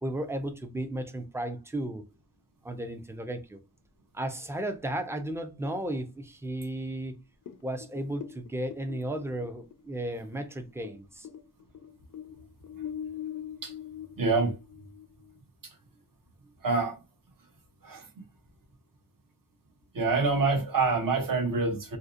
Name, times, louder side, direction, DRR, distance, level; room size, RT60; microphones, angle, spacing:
voice 1, 0.0-2.0 2.6-3.6 4.1-7.1 7.6-11.3, right 1 dB, 5° right, 0.4 m, -34 dB
sound 1, 7.5-11.0 11.2-15.4, left 9 dB, 50° left, 0.5 m, -41 dB
voice 2, 14.2-14.5 16.6-16.9 17.8-18.0 19.9-22.0, right 3 dB, 55° right, 0.8 m, -26 dB
2.7 x 2.0 x 2.4 m
wide cardioid pair, 60°, 41 cm